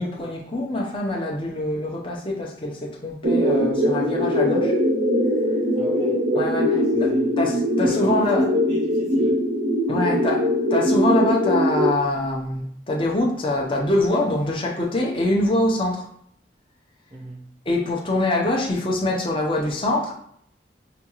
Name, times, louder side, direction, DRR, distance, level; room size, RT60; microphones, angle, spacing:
voice 1, 0.0-4.7 6.3-6.7 7.0-8.5 9.9-16.0 17.7-20.1, left 1 dB, 30° left, 0.7 m, -24 dB
sound 1, 3.2-11.9, equal, 85° right, 0.6 m, -21 dB
voice 2, 5.7-6.3 6.7-7.4 7.8-9.5 17.1-17.5, right 2 dB, 25° right, 0.5 m, -38 dB
5.0 x 2.4 x 3.0 m
head